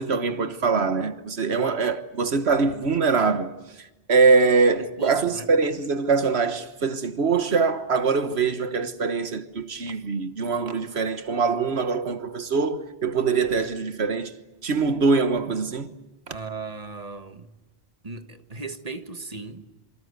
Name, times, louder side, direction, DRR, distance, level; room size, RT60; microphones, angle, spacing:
voice 1, 0.0-3.5 3.8-14.3 14.6-15.9, right 4 dB, 85° right, 1.6 m, -23 dB
voice 2, 1.5-1.8 4.8-5.5 16.3-17.5 18.0-19.7, right 3 dB, 35° right, 1.6 m, -37 dB
27.0 x 25.0 x 8.1 m
omnidirectional pair, 1.1 m